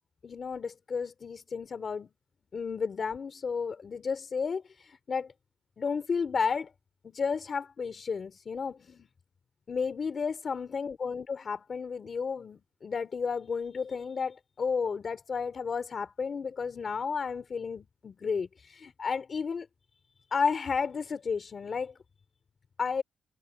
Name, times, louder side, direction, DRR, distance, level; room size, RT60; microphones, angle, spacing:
voice 1, 0.2-2.1 2.5-5.3 5.8-6.7 7.0-9.1 9.7-19.7 20.3-21.9 22.8-23.0, left 5 dB, 40° left, 2.9 m, -32 dB
wide cardioid pair, 155°, 0 cm